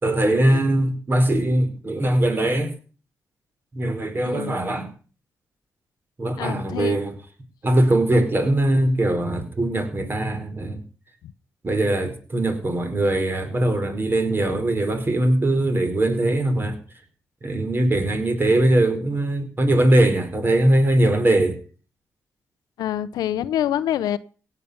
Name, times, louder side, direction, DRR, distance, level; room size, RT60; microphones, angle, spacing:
voice 1, 0.0-2.7 3.7-4.9 6.2-7.1 7.6-10.8 11.6-16.8 17.4-21.6, right 1 dB, 35° right, 4.5 m, -21 dB
voice 2, 4.3-4.6 6.4-7.0 22.8-24.2, left 11 dB, 85° left, 0.7 m, -26 dB
17.0 x 8.4 x 6.9 m
cardioid pair, 65°, 7 cm